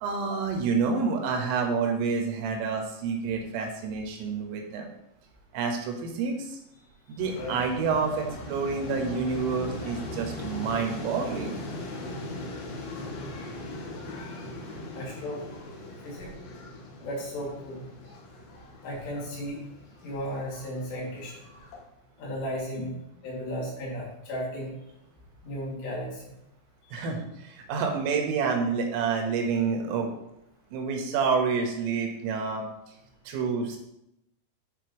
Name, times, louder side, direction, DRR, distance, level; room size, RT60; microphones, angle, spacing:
voice 1, 0.0-4.9 5.5-6.6 7.1-11.6 22.8-22.9 26.9-30.1 30.7-32.6 33.3-33.8, right 5 dB, 85° right, 2 dB, 3.8 m, -28 dB
sound 1, 7.2-21.8, left 1 dB, 85° left, 4.3 m, -40 dB
voice 2, 14.9-15.4 16.0-16.3 17.0-17.8 18.8-19.6 20.0-21.4 22.2-22.9 23.2-24.7 25.4-26.2, equal, 60° left, -5 dB, 4.3 m, -34 dB
11.5 x 5.4 x 3.0 m, 0.82 s
omnidirectional pair, 5.8 m